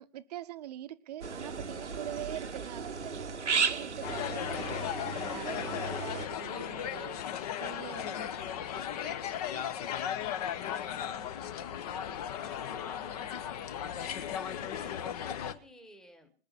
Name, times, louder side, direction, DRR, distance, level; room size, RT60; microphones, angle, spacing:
voice 1, 0.0-7.2 7.6-9.8, right 12 dB, 35° right, 12 dB, 0.9 m, -44 dB
sound 1, 1.2-6.3, right 5 dB, 80° right, 1.0 m, -35 dB
sound 2, 4.0-15.5, left 9 dB, 35° left, 1.0 m, -36 dB
voice 2, 11.0-16.3, equal, ahead, 8 dB, 1.4 m, -54 dB
20.5 x 8.8 x 6.0 m, 0.42 s
figure-of-eight pair, 120°, 34 cm